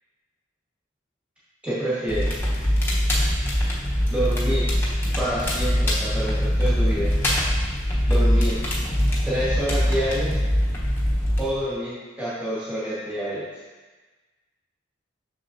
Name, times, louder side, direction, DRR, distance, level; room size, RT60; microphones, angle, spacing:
voice 1, 1.6-2.4 4.1-4.7 5.2-7.1 8.1-8.6 9.3-10.4 11.4-13.5, right 1 dB, 5° right, -13 dB, 1.8 m, -27 dB
Crackle, 2.1-11.5, equal, 10° left, 0.9 m, -22 dB
6.8 x 6.2 x 2.7 m, 1.3 s
head